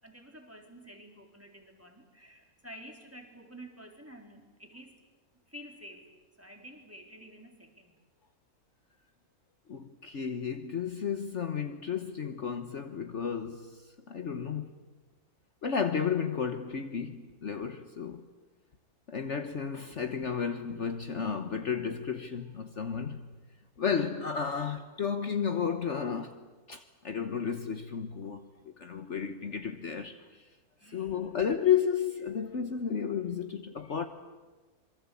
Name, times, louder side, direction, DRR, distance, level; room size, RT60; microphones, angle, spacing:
voice 1, 0.0-4.9 5.5-6.1 6.4-8.0 30.8-31.4, equal, 10° right, 3.7 m, -50 dB
voice 2, 9.7-14.8 15.6-18.3 19.1-23.2 23.8-26.4 26.7-30.5 30.9-34.1, left 7 dB, 55° left, 1.4 m, -32 dB
26.5 x 23.5 x 8.4 m
omnidirectional pair, 1.6 m